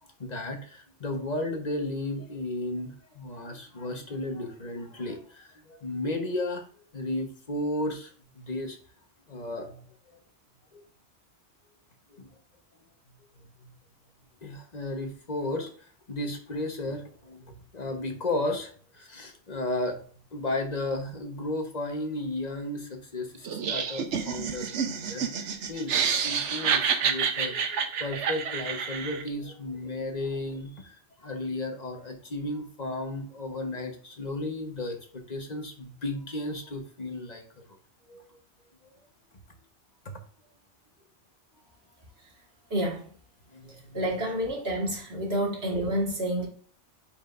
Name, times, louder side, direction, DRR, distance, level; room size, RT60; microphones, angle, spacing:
voice 1, 0.0-8.8 9.3-9.9 10.7-10.8 12.1-12.3 13.3-13.7 14.4-25.3 25.7-37.4 37.7-37.8 38.1-38.4 43.5-44.1, left 2 dB, 40° left, 4 dB, 1.3 m, -34 dB
Laughter, 23.4-29.3, right 6 dB, 85° right, 1.1 m, -28 dB
voice 2, 42.7-43.1 43.9-46.5, right 1 dB, 60° right, -1 dB, 2.1 m, -29 dB
8.8 x 5.0 x 2.6 m, 0.43 s
omnidirectional pair, 1.2 m